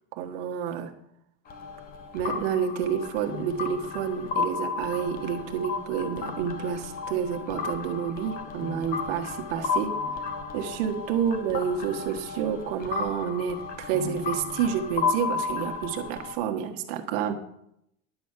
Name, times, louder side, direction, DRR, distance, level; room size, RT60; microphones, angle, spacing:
voice 1, 0.1-0.9 2.1-9.9 10.5-17.3, right 8 dB, 65° right, 5 dB, 1.4 m, -29 dB
sound 1, 1.5-16.3, left 5 dB, 30° left, 0.9 m, -33 dB
10.5 x 5.6 x 8.1 m, 0.76 s
supercardioid pair, 160°, 32 cm